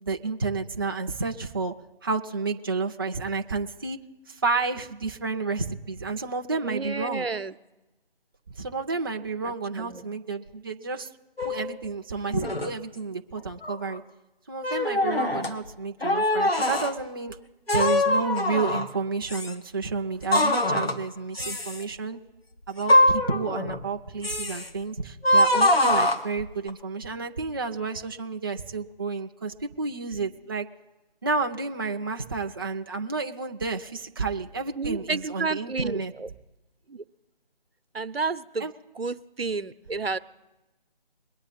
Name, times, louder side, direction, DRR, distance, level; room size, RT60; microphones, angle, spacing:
voice 1, 0.0-1.7 2.0-4.0 4.3-7.3 8.6-11.1 11.4-14.0 14.5-17.4 17.7-22.2 22.7-30.7 31.2-36.1 38.6-38.7, right 4 dB, 25° right, 3 dB, 0.6 m, -30 dB
voice 2, 6.6-7.5 9.4-10.1 34.8-36.3 36.9-37.0 37.9-40.2, right 4 dB, 85° right, 11 dB, 0.9 m, -31 dB
sound 1, 11.4-11.8 12.3-12.7 13.4-14.0 14.6-15.5 16.0-16.9 17.7-19.0 19.3-19.5 20.3-21.0 21.4-21.8 22.8-23.9 24.2-24.7 25.2-26.7, left 1 dB, 90° left, 1.9 m, -23 dB
22.5 x 8.9 x 4.1 m, 1.0 s
figure-of-eight pair, 155°, 29 cm